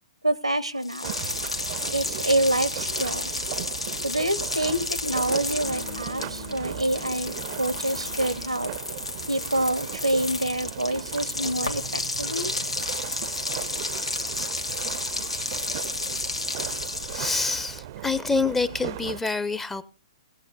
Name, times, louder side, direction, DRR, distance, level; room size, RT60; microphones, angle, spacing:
voice 1, 0.2-1.3 1.9-3.3 4.0-8.7 9.3-12.5, right 1 dB, 90° right, 18 dB, 0.8 m, -27 dB
sound 1, 0.8-17.6, left 2 dB, 85° left, 1.4 m, -32 dB
sound 2, 1.0-19.2, right 12 dB, 45° right, 0.5 m, -38 dB
sound 3, 5.6-8.8, left 7 dB, 35° left, 0.8 m, -44 dB
voice 2, 17.1-19.8, left 3 dB, 10° left, 15 dB, 0.5 m, -26 dB
18.0 x 7.6 x 3.9 m, 0.33 s
figure-of-eight pair, 115°, 3 cm